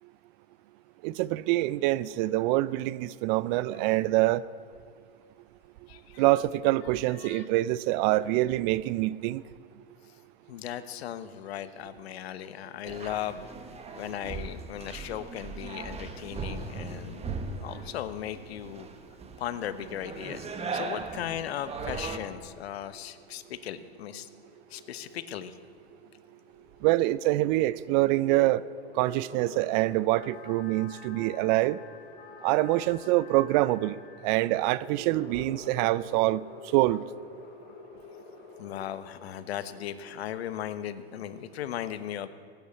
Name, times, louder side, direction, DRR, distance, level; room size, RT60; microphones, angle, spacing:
voice 1, 1.0-4.4 6.2-9.4 26.8-28.6 29.0-31.8 32.4-33.9 34.2-36.4 36.7-37.0, right 17 dB, 45° right, 0.5 m, -25 dB
voice 2, 5.9-6.2 7.1-7.5 10.5-13.6 13.9-18.9 19.4-20.5 20.7-24.3 24.7-25.6 38.6-42.3, left 11 dB, 75° left, 1.1 m, -37 dB
sound 1, 12.8-22.2, right 4 dB, 20° right, 1.4 m, -39 dB
sound 2, 22.9-39.1, left 4 dB, 45° left, 2.8 m, -50 dB
sound 3, 30.2-35.2, left 7 dB, 25° left, 1.4 m, -50 dB
17.5 x 9.3 x 8.4 m
hypercardioid pair, 115°, 31 cm